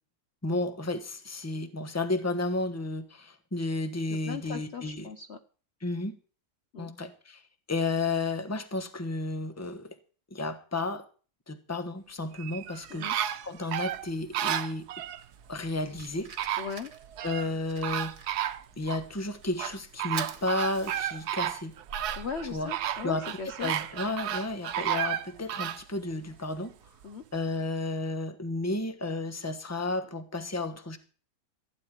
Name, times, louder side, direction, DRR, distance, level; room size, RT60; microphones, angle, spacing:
voice 1, 0.4-5.1 5.8-6.1 6.8-7.4 7.7-10.0 10.3-11.1 11.5-14.9 15.5-16.3 17.2-18.1 18.8-21.7 22.5-22.7 23.0-23.2 23.6-26.7 27.3-31.0, left 2 dB, 10° left, 9 dB, 1.1 m, -32 dB
voice 2, 4.1-5.4 6.7-6.9 12.9-13.2 16.6-16.9 22.1-23.7 27.0-27.2, left 5 dB, 50° left, 8 dB, 1.0 m, -38 dB
sound 1, 12.4-15.2 16.0-16.1 16.4-17.5 17.8-19.0 19.6-25.8 26.3-26.4, right 11 dB, 75° right, 1.3 m, -32 dB
Fire, 15.2-24.9, right 5 dB, 60° right, 1.9 m, -48 dB
15.5 x 5.4 x 9.9 m, 0.39 s
omnidirectional pair, 1.7 m